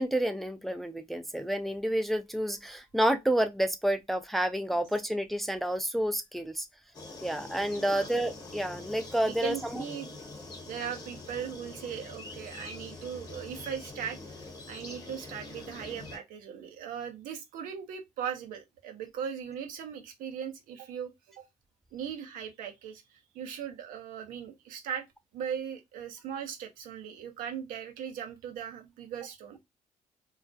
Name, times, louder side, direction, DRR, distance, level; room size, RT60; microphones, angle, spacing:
voice 1, 0.0-6.7 7.2-9.8, right 1 dB, ahead, 0.3 m, -29 dB
sound 1, 6.9-16.2, left 2 dB, 30° left, 0.9 m, -45 dB
voice 2, 7.8-8.1 9.2-10.2 10.7-21.1 21.4-21.5 21.9-25.1 25.3-29.6, right 8 dB, 85° right, 0.6 m, -39 dB
2.3 x 2.0 x 2.5 m
cardioid pair, 85°, 14 cm